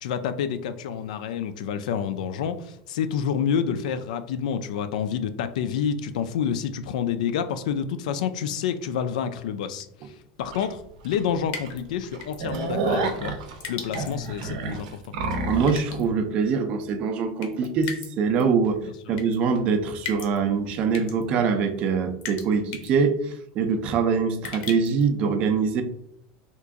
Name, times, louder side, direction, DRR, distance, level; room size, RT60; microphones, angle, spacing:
voice 1, 0.0-13.4 13.7-15.1 18.8-19.2, left 7 dB, 85° left, 11 dB, 0.4 m, -28 dB
sound 1, 10.5-10.7 11.1-11.2 11.5-11.7 12.0-15.8, right 3 dB, 85° right, 0.6 m, -29 dB
sound 2, 11.5-11.8 12.2-12.6 13.6-14.3 15.7-16.1 17.4-18.1 18.4-18.5 19.2-19.4 20.1-20.4 20.9-21.2 22.2-22.5 22.7-22.9 24.4-25.0, left 6 dB, 40° left, 0.6 m, -36 dB
voice 2, 15.4-18.8 19.1-25.8, right 5 dB, 30° right, 7 dB, 0.3 m, -24 dB
2.9 x 2.5 x 3.5 m, 0.73 s
supercardioid pair, 180°, 4 cm